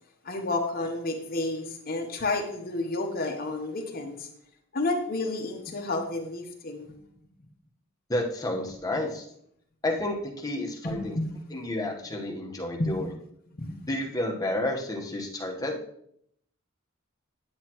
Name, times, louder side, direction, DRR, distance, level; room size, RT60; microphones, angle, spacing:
voice 1, 0.2-4.3 4.7-6.9 10.8-11.3 12.8-12.9 13.6-13.8, left 2 dB, 45° left, 4 dB, 0.9 m, -30 dB
voice 2, 8.1-9.2 9.8-11.1 11.5-13.1 13.9-15.8, left 1 dB, 15° left, 0 dB, 1.2 m, -30 dB
9.5 x 8.3 x 3.0 m, 0.70 s
head